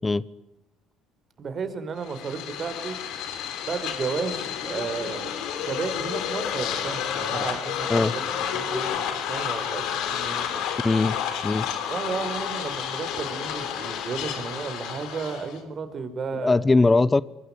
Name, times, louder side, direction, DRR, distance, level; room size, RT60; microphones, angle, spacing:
voice 1, 1.4-3.0 3.6-5.3 5.6-8.2 8.5-10.6 11.9-16.9, right 5 dB, 45° right, 10 dB, 4.8 m, -33 dB
sound 1, 2.0-15.6, left 8 dB, 65° left, 3.8 m, -30 dB
voice 2, 10.8-11.2 11.4-11.7 16.3-17.2, left 3 dB, 20° left, 21 dB, 0.9 m, -20 dB
25.0 x 21.5 x 9.9 m, 0.91 s
hypercardioid pair, 55°, 0 cm